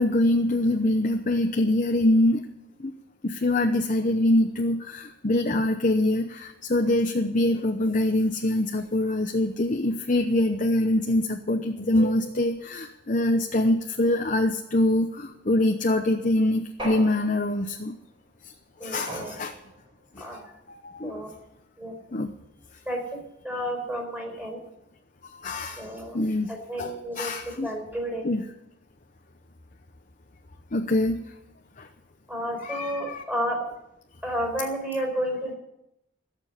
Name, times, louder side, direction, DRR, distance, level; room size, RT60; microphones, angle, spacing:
voice 1, 0.0-2.4 2.8-2.9 3.2-17.9 18.4-18.5 18.8-19.5 20.2-20.3 20.7-21.2 22.1-22.3 25.4-26.5 26.8-27.7 28.2-28.4 30.7-31.2 31.8-31.9 32.6-33.2, left 1 dB, 40° left, 4 dB, 0.9 m, -24 dB
sound 1, 16.8-17.8 19.1-19.9, right 1 dB, 25° right, 4.0 m, -38 dB
voice 2, 18.8-19.3 20.2-20.4 21.0-21.3 21.8-21.9 22.8-23.0 23.4-24.6 25.8-26.2 26.5-28.2 32.3-33.7 34.2-35.5, equal, 10° right, 1 dB, 4.9 m, -31 dB
17.5 x 7.1 x 9.9 m, 0.83 s
head